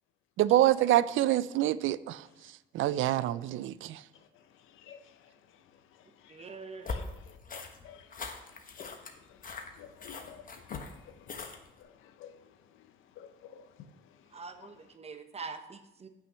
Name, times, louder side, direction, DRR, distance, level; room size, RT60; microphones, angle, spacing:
voice 1, 0.4-2.2 2.7-4.0, right 14 dB, 80° right, 0.4 m, -26 dB
voice 2, 4.1-7.4 7.8-14.9, left 8 dB, 90° left, 0.8 m, -53 dB
voice 3, 6.3-7.1 14.3-16.1, right 4 dB, 30° right, 1.0 m, -44 dB
sound 1, 6.9-11.8, left 4 dB, 45° left, 1.2 m, -41 dB
8.3 x 6.3 x 5.5 m
cardioid pair, 90°, 20 cm